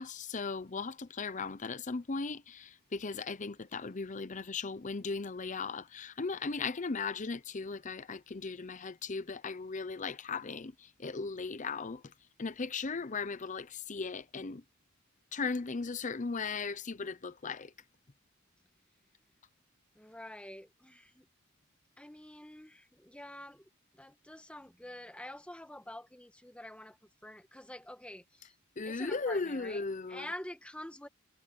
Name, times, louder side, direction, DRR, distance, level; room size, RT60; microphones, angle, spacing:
voice 1, 0.0-12.0 12.4-14.6 15.3-17.7 28.8-30.3, left 4 dB, 35° left, 0.7 m, -37 dB
voice 2, 19.9-21.3 22.0-27.0 27.2-28.6 28.8-29.8 30.1-31.1, left 1 dB, 5° left, 1.5 m, -47 dB
head